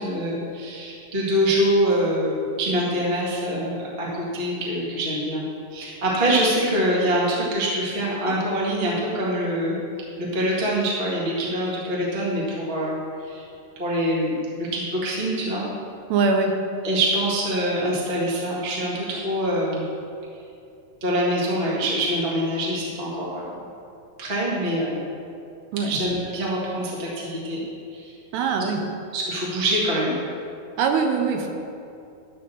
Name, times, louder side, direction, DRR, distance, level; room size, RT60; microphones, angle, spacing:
voice 1, 0.0-5.4 5.7-9.8 10.2-13.0 13.3-13.4 13.7-15.7 16.8-19.8 21.0-23.6 24.2-25.0 25.8-27.6 27.9-28.1 29.1-30.1, equal, 70° right, -6 dB, 0.5 m, -24 dB
voice 2, 16.1-16.5 25.7-26.0 28.3-28.8 30.8-31.5, right 4 dB, 90° right, 3 dB, 3.0 m, -22 dB
12.0 x 4.3 x 6.9 m, 2.6 s
omnidirectional pair, 4.7 m